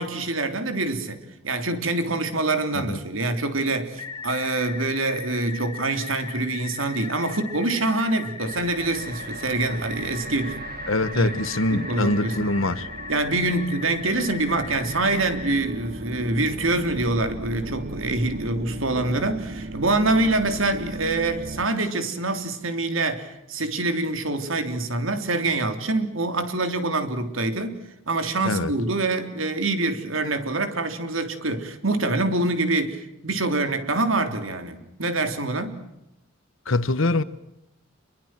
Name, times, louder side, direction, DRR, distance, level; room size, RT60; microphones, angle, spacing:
voice 1, 0.0-10.6 11.1-11.3 11.7-12.5 13.1-27.8 28.1-35.8, right 2 dB, 80° right, 3.4 m, -25 dB
sound 1, 4.0-15.6, left 6 dB, 20° left, 2.4 m, -38 dB
sound 2, 8.4-21.7, right 2 dB, 50° right, 1.7 m, -37 dB
voice 2, 10.9-12.9 28.4-28.7 36.7-37.2, left 2 dB, 75° left, 1.4 m, -24 dB
28.0 x 23.0 x 7.6 m
head